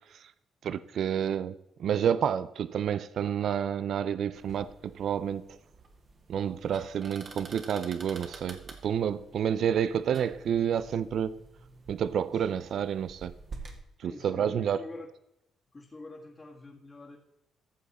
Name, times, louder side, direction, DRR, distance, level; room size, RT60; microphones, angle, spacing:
voice 1, 0.6-1.5 1.8-5.4 6.3-11.3 11.9-13.3 14.0-14.8, right 8 dB, 65° right, 0.5 m, -29 dB
sound 1, 4.3-13.8, right 3 dB, 45° right, 2.1 m, -49 dB
voice 2, 14.0-15.1 15.7-17.2, left 2 dB, 25° left, 1.8 m, -46 dB
14.5 x 7.0 x 4.2 m
cardioid pair, 90°, 0 cm